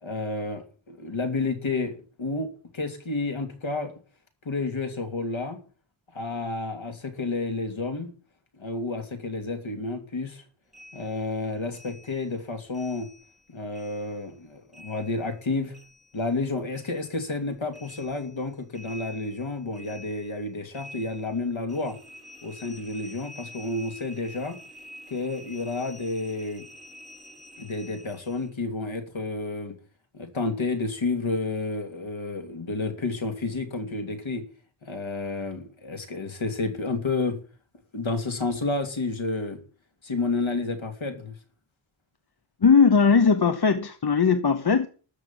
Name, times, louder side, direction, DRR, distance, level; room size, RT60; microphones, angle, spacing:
voice 1, 0.0-3.9 4.4-5.6 6.1-8.1 8.6-10.4 10.9-13.1 13.5-15.8 16.1-22.0 22.4-24.6 25.1-26.6 27.6-29.8 30.1-34.5 34.8-37.4 37.9-39.6 40.0-41.3, left 3 dB, 70° left, 2.9 m, -30 dB
sound 1, 10.7-13.4 13.7-16.5 16.7-28.5, equal, ahead, 4.4 m, -48 dB
voice 2, 42.6-44.9, left 5 dB, 50° left, 1.1 m, -19 dB
13.0 x 6.4 x 9.0 m
wide cardioid pair, 95°, 48 cm